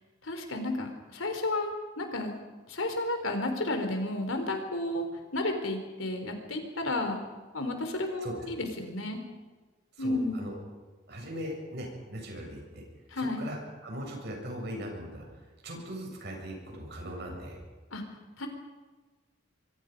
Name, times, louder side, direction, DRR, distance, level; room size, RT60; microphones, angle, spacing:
voice 1, 0.2-1.7 2.0-2.4 2.7-5.1 5.3-7.2 7.5-9.2 10.0-10.5 13.1-13.5 17.9-18.0 18.4-18.5, left 2 dB, 85° left, 6 dB, 3.9 m, -32 dB
voice 2, 10.0-10.6 11.1-12.8 13.2-17.6, equal, 55° right, 0 dB, 7.4 m, -40 dB
26.0 x 23.5 x 5.4 m, 1.3 s
head